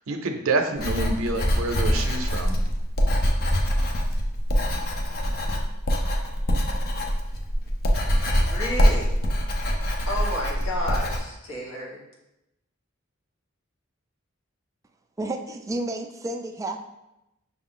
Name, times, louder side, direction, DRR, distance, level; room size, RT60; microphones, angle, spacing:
voice 1, 0.1-2.5, right 3 dB, 75° right, 5 dB, 0.6 m, -27 dB
Writing, 0.8-11.2, equal, 45° left, 0.6 m, -24 dB
voice 2, 8.4-9.1 10.1-12.0, left 1 dB, 70° left, -4 dB, 1.3 m, -31 dB
voice 3, 15.2-16.9, right 2 dB, 15° right, 5 dB, 0.3 m, -31 dB
5.7 x 2.3 x 3.7 m, 0.90 s
head